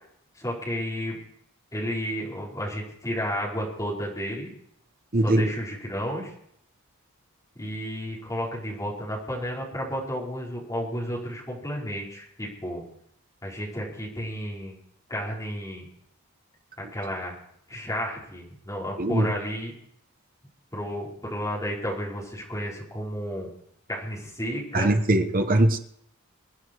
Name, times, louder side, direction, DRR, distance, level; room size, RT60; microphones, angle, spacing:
voice 1, 0.4-1.2 1.7-4.5 5.2-6.3 7.6-12.8 13.4-14.8 15.1-15.9 16.8-17.4 17.7-19.7 20.7-23.5 23.9-24.9, equal, 15° left, -5 dB, 5.2 m, -32 dB
voice 2, 5.1-5.5 19.0-19.3 24.7-25.8, right 1 dB, 40° right, 6 dB, 1.3 m, -21 dB
25.5 x 9.8 x 4.8 m, 0.69 s
head